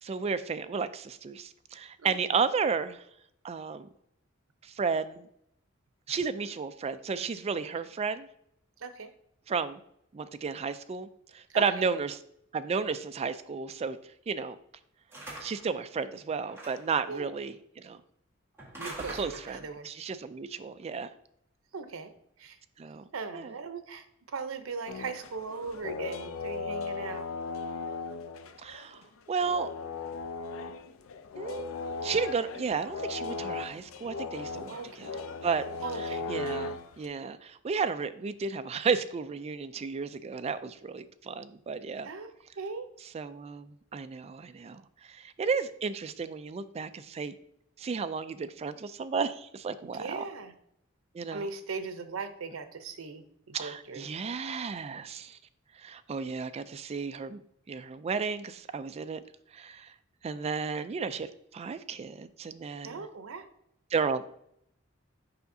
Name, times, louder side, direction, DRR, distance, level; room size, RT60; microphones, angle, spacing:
voice 1, 0.0-3.0 3.4-3.9 4.6-5.3 6.1-8.3 9.5-9.8 10.1-12.2 12.5-14.0 14.3-14.6 15.4-18.0 19.1-21.1 22.8-23.0 23.3-23.5 28.6-29.0 29.3-29.7 31.4-35.1 35.4-35.7 36.3-42.1 43.1-47.3 47.8-50.2 51.1-51.5 53.5-55.4 55.8-57.4 57.7-59.2 59.5-59.9 60.2-63.0 63.9-64.2, right 5 dB, 30° right, 12 dB, 0.3 m, -33 dB
voice 2, 8.8-9.1 11.5-11.9 17.1-17.3 18.8-19.9 21.7-22.1 22.4-22.6 23.1-27.3 34.7-34.9 35.8-36.2 42.0-42.9 49.9-50.5 51.3-54.1 62.8-63.5, right 4 dB, 90° right, 9 dB, 0.7 m, -39 dB
sound 1, 15.1-15.7 16.5-17.0 18.6-19.7, right 1 dB, 10° right, 1.6 m, -43 dB
sound 2, 24.9-29.1 29.4-37.1, left 3 dB, 75° left, 0.4 m, -37 dB
6.8 x 5.7 x 2.7 m, 0.74 s
head